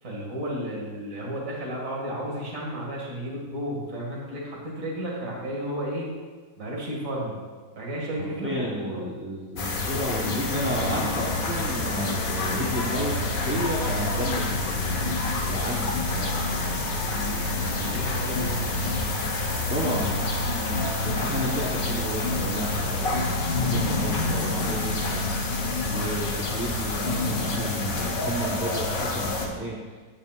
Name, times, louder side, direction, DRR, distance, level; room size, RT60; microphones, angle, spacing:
voice 1, 0.0-6.1 6.6-7.4 7.8-9.1 16.6-19.1 21.3-21.5 25.7-26.1, equal, 55° right, -3 dB, 2.4 m, -33 dB
voice 2, 8.4-16.3 19.7-20.2 21.0-23.3 23.6-25.2 25.9-29.8, equal, 10° right, -6 dB, 0.8 m, -32 dB
sound 1, 9.6-29.5, left 2 dB, 60° left, 1.5 m, -27 dB
14.0 x 8.9 x 2.5 m, 1.5 s
omnidirectional pair, 1.7 m